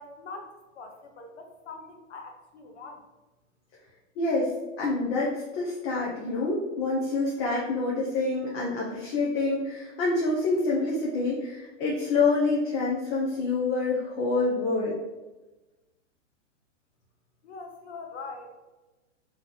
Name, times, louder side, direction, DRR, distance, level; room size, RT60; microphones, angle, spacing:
voice 1, 0.0-3.0 17.4-18.5, left 3 dB, 65° left, 4 dB, 1.0 m, -43 dB
voice 2, 4.2-4.5 4.8-14.9, left 3 dB, 30° left, -4 dB, 0.8 m, -27 dB
3.6 x 3.0 x 3.9 m, 1.1 s
hypercardioid pair, 135°, 37 cm